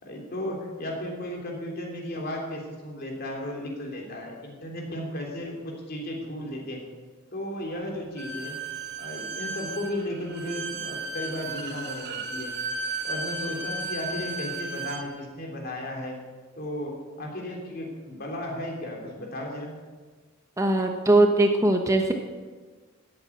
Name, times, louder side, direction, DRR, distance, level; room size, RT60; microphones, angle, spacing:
voice 1, 0.0-6.8 7.3-8.6 9.0-12.5 13.0-16.2 16.6-19.8, left 1 dB, 50° left, 0 dB, 3.4 m, -35 dB
Bowed string instrument, 8.2-15.0, right 2 dB, 55° right, 2.0 m, -34 dB
voice 2, 20.6-22.1, right 2 dB, 15° right, 4 dB, 1.0 m, -20 dB
13.5 x 8.8 x 8.7 m, 1.4 s
head